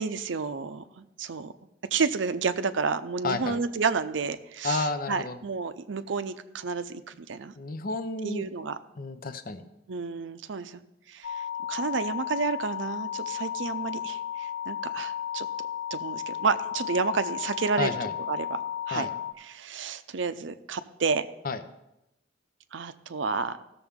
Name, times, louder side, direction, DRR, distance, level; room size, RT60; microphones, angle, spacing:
voice 1, 0.0-1.5 1.9-7.5 8.2-8.8 9.9-10.8 11.1-11.4 11.7-15.5 15.9-18.0 18.3-18.6 18.9-19.1 19.5-21.3 22.7-23.6, right 5 dB, 80° right, 11 dB, 0.6 m, -30 dB
voice 2, 3.2-3.6 4.6-5.4 7.6-8.4 9.0-9.7 17.8-18.1 18.9-19.1 21.4-21.6, left 3 dB, 50° left, 9 dB, 0.7 m, -31 dB
sound 1, 11.2-19.3, left 10 dB, 80° left, 1.2 m, -34 dB
16.0 x 6.9 x 3.6 m, 0.90 s
head